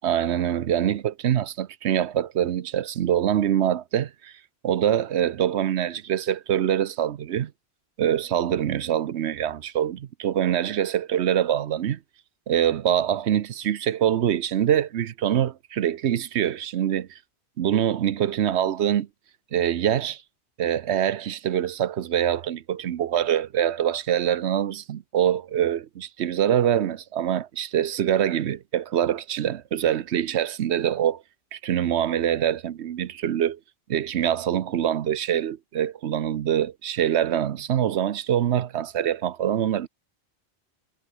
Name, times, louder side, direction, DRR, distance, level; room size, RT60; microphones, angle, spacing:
voice 1, 0.0-4.3 4.6-7.5 8.0-12.0 12.5-17.2 17.6-19.1 19.5-20.2 20.6-31.2 31.5-33.6 33.9-39.9, right 10 dB, 85° right, 1.0 m, -24 dB
omnidirectional pair, 1.1 m